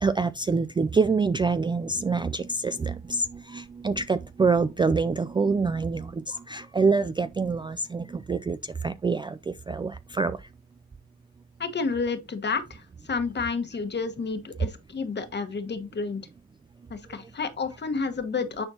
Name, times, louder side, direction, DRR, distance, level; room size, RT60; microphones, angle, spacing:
voice 1, 0.0-10.4, right 4 dB, 15° right, 0.3 m, -26 dB
voice 2, 11.6-16.2 16.9-18.7, left 4 dB, 35° left, 1.4 m, -30 dB
9.7 x 4.3 x 2.8 m
cardioid pair, 90°, 30 cm